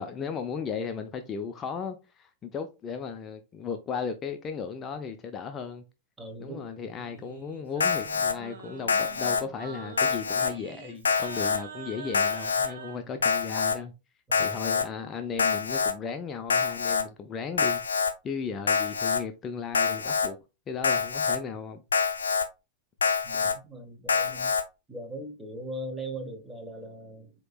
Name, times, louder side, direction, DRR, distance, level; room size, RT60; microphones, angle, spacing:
voice 1, 0.0-5.8 6.4-13.9 14.4-17.8 18.2-20.4 20.7-21.8 24.3-24.5, left 6 dB, 25° left, 0.6 m, -36 dB
voice 2, 6.2-6.7 14.4-14.6 23.2-24.5 24.9-27.3, right 1 dB, 10° right, 1.2 m, -39 dB
Singing, 6.9-13.0, right 6 dB, 60° right, 1.1 m, -44 dB
Alarm, 7.8-8.3 8.9-9.4 10.0-10.5 11.0-11.6 12.1-12.7 13.2-13.8 14.3-14.8 15.4-15.9 16.5-17.0 17.6-18.1 18.7-19.2 19.7-20.3 20.8-21.4 21.9-22.4 23.0-23.5 24.1-24.6, left 5 dB, 70° left, 0.6 m, -26 dB
7.7 x 3.0 x 2.3 m
figure-of-eight pair, 90°, 0 cm